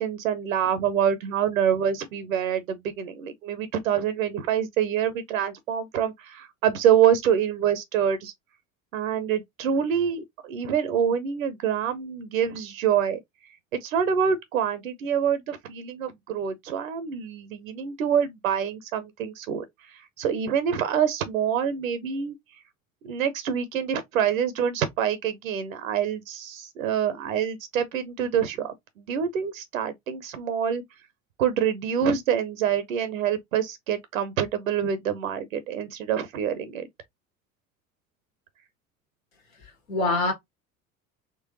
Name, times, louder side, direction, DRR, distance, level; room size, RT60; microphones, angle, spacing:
voice 1, 0.0-8.3 8.9-13.2 13.8-19.6 19.9-22.4 23.0-30.8 31.4-36.9, right 8 dB, 70° right, 0.7 m, -26 dB
voice 2, 39.6-40.3, left 3 dB, 75° left, 1.6 m, -26 dB
3.7 x 3.0 x 2.9 m
figure-of-eight pair, 65°, 41 cm